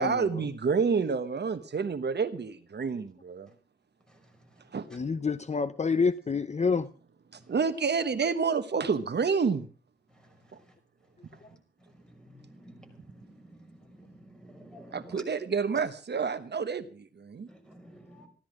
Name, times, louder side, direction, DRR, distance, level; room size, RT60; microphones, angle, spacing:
voice 1, 0.0-3.5 4.7-4.9 7.3-9.7 14.9-17.5, right 5 dB, 65° right, 1.2 m, -29 dB
voice 2, 4.1-4.8 7.3-7.5 10.1-10.8 11.2-15.2 17.5-18.3, right 1 dB, 5° left, 5.7 m, -53 dB
voice 3, 4.9-6.9, left 5 dB, 35° left, 0.6 m, -27 dB
15.5 x 12.5 x 6.3 m
wide cardioid pair, 95°, 19 cm